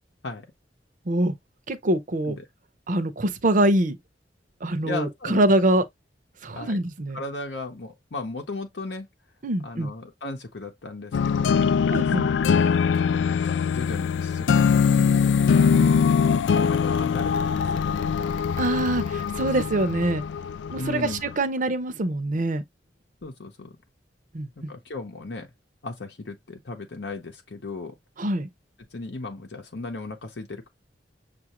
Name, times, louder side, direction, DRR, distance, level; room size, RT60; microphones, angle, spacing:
voice 1, 1.7-2.4 2.9-4.0 4.6-5.8 6.4-7.2 9.4-9.9 11.9-12.3 15.7-16.0 18.6-20.2 20.7-22.6 24.3-24.7 28.2-28.5, right 1 dB, 45° right, 0.7 m, -24 dB
voice 2, 4.8-5.5 6.5-6.8 7.1-9.1 9.6-11.7 12.2-12.3 13.1-15.4 16.0-18.3 20.8-21.2 23.2-23.8 24.6-25.5 25.8-28.0 28.9-30.7, left 2 dB, 70° left, 0.8 m, -36 dB
sound 1, 11.1-21.3, left 6 dB, 85° left, 0.3 m, -22 dB
6.5 x 2.5 x 2.9 m
head